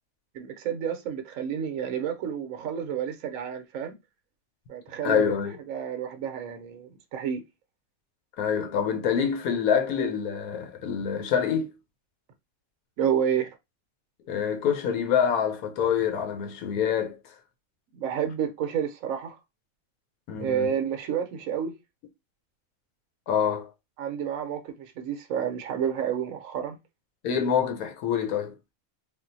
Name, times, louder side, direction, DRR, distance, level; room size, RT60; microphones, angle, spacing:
voice 1, 0.3-3.9 4.7-5.3 5.7-7.4 13.0-13.6 17.9-19.4 20.4-21.7 24.0-26.8, right 8 dB, 70° right, 1.0 m, -30 dB
voice 2, 5.0-5.6 8.4-11.7 14.3-17.2 20.3-20.7 23.3-23.7 27.2-28.5, left 7 dB, 85° left, 1.2 m, -26 dB
3.5 x 2.5 x 2.6 m
omnidirectional pair, 1.5 m